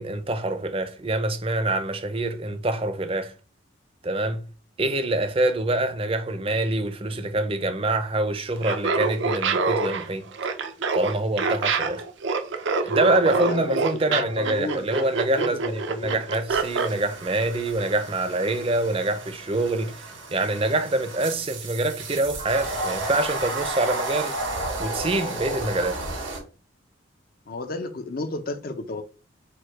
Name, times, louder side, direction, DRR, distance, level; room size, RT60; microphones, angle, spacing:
voice 1, 0.0-3.3 4.0-4.5 4.8-10.3 10.9-12.0 12.8-24.4 24.8-26.0, right 2 dB, 30° right, 0.6 m, -25 dB
Laughter, 8.6-16.9, right 4 dB, 70° right, 0.6 m, -26 dB
voice 2, 13.2-13.8 14.1-16.2 27.5-29.0, left 3 dB, 50° left, 0.6 m, -33 dB
sound 1, 16.5-26.4, right 2 dB, 90° right, 2.3 m, -33 dB
4.6 x 2.3 x 4.6 m
head